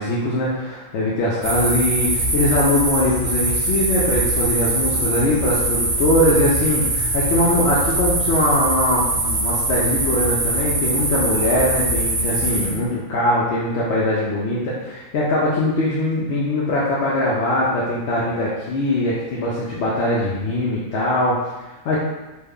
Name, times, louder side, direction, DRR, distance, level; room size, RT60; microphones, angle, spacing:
voice 1, 0.0-22.0, left 1 dB, 65° left, -6 dB, 0.7 m, -21 dB
sound 1, 1.4-12.8, right 2 dB, 85° right, 1.2 m, -22 dB
3.2 x 2.0 x 3.5 m, 1.1 s
omnidirectional pair, 1.5 m